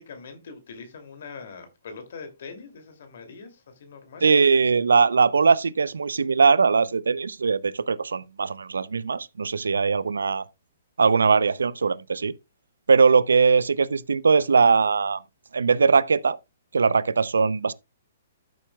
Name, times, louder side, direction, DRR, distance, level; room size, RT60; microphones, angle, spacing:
voice 1, 0.0-4.3, left 5 dB, 60° left, 2.6 m, -42 dB
voice 2, 4.2-10.5 11.0-12.3 12.9-15.2 15.5-16.4 16.7-17.7, right 5 dB, 75° right, 0.6 m, -20 dB
13.5 x 7.2 x 2.3 m
figure-of-eight pair, 125°, 0 cm